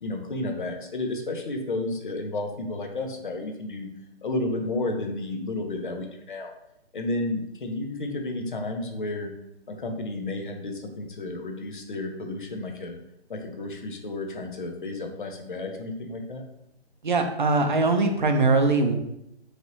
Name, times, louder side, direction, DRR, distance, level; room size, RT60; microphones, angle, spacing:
voice 1, 0.0-3.9 4.2-6.5 6.9-9.3 9.7-13.0 13.3-16.4, left 2 dB, 50° left, 3 dB, 0.7 m, -32 dB
voice 2, 17.0-18.9, right 3 dB, 45° right, 5 dB, 0.5 m, -21 dB
4.4 x 3.2 x 2.7 m, 0.80 s
hypercardioid pair, 170°, 33 cm